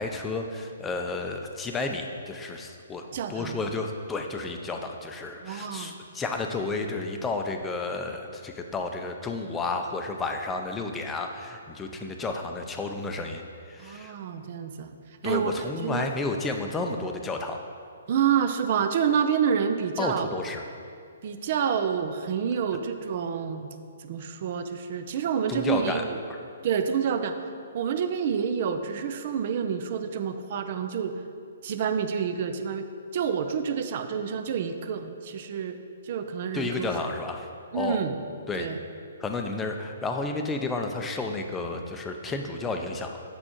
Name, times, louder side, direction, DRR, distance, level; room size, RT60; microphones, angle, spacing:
voice 1, 0.0-14.1 15.2-17.6 20.0-20.6 25.5-26.4 36.5-37.5 37.7-38.0 38.5-38.7 39.2-43.2, left 3 dB, 15° left, 3 dB, 0.5 m, -32 dB
voice 2, 3.1-3.6 5.4-6.0 13.8-15.0 15.2-15.5 15.8-16.1 18.1-20.3 21.2-23.7 24.0-26.2 26.6-27.4 27.7-31.1 31.6-32.9 33.1-35.8 36.0-36.9 37.7-38.1 38.6-38.8, right 7 dB, 50° right, 8 dB, 0.4 m, -28 dB
6.9 x 4.3 x 4.4 m, 2.4 s
figure-of-eight pair, 130°, 0 cm